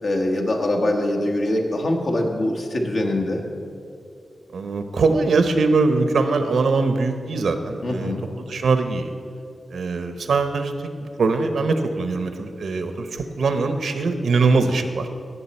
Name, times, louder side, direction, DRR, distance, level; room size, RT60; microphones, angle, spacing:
voice 1, 0.0-3.5 7.8-8.3, left 1 dB, 70° left, 1 dB, 1.5 m, -23 dB
voice 2, 4.5-8.1 8.5-9.1 9.7-10.9 11.2-15.1, right 3 dB, 80° right, 8 dB, 0.8 m, -22 dB
16.5 x 6.3 x 4.4 m, 2.5 s
cardioid pair, 70°, 0 cm